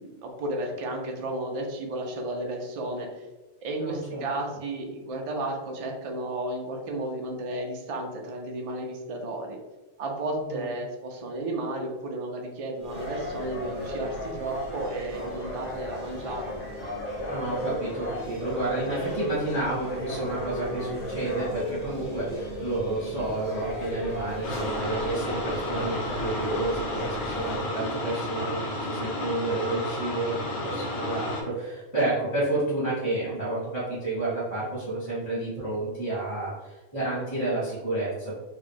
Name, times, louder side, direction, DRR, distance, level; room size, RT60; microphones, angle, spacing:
voice 1, 0.0-3.2 3.6-9.6 10.0-16.5, right 1 dB, 65° right, 1 dB, 0.3 m, -33 dB
voice 2, 3.8-4.3 10.4-10.7 17.3-38.3, right 2 dB, 15° left, -12 dB, 1.4 m, -30 dB
sound 1, 12.8-27.6, left 1 dB, 35° left, 1.1 m, -35 dB
sound 2, 24.4-31.4, left 1 dB, 80° left, 1.3 m, -32 dB
3.1 x 2.5 x 3.5 m, 1.2 s
omnidirectional pair, 1.2 m